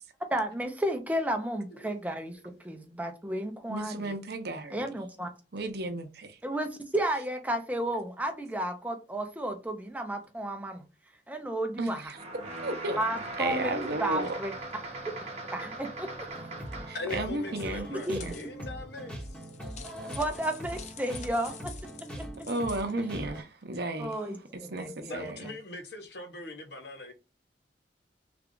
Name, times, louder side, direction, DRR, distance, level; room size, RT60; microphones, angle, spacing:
voice 1, 0.3-2.4 2.6-4.2 4.7-5.3 6.4-10.8 11.3-12.1 13.0-14.5 15.5-16.3 18.1-18.2 20.1-21.7 22.2-22.3 24.0-25.3, right 1 dB, 10° right, 0.6 m, -32 dB
voice 2, 3.7-4.8 5.5-6.4 11.8-12.2 12.6-13.0 13.4-14.3 16.8-18.3 22.5-25.4, right 2 dB, 60° right, 0.7 m, -34 dB
sound 1, 12.1-17.1, right 2 dB, 35° right, 1.0 m, -40 dB
sound 2, 16.3-23.4, equal, 5° left, 1.1 m, -41 dB
voice 3, 16.9-19.5 25.1-27.1, left 2 dB, 60° left, 0.9 m, -41 dB
sound 3, 18.0-18.5 19.2-22.9, left 8 dB, 40° left, 0.4 m, -48 dB
3.4 x 2.4 x 3.7 m
head